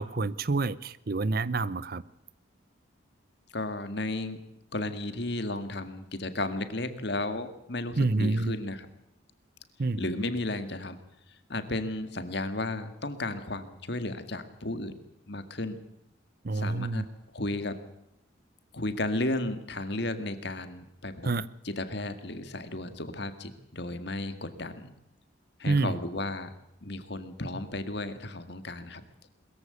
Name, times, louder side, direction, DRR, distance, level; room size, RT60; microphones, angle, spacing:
voice 1, 0.0-2.0 8.0-8.5 9.8-10.0 16.4-17.1 21.2-21.4 25.7-26.0, right 3 dB, 50° right, 18 dB, 0.7 m, -28 dB
voice 2, 3.5-4.5 4.7-8.9 10.0-11.0 11.3-14.9 15.3-15.8 16.5-17.1 17.3-17.8 18.7-21.3 21.6-24.9 25.6-26.5 26.8-29.0, left 2 dB, 55° left, 10 dB, 1.9 m, -34 dB
21.5 x 14.5 x 8.3 m, 0.85 s
head